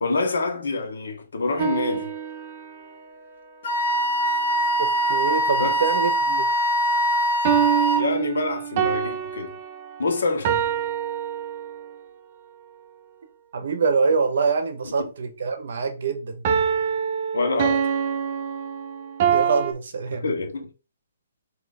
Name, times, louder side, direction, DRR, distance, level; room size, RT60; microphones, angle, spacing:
voice 1, 0.0-2.1 5.6-5.8 7.9-9.6 10.0-10.6 14.8-15.1 17.3-17.9 20.1-20.7, left 3 dB, 75° left, 1.2 m, -26 dB
sound 1, 1.6-3.0 7.4-12.0 16.4-19.7, right 8 dB, 25° right, 0.4 m, -25 dB
Wind instrument woodwind instrument, 3.6-8.1, right 1 dB, 45° left, 1.6 m, -22 dB
voice 2, 4.8-6.5 13.5-16.4 19.3-20.2, right 5 dB, 50° right, 0.9 m, -25 dB
3.6 x 2.8 x 4.1 m
hypercardioid pair, 180°, 0 cm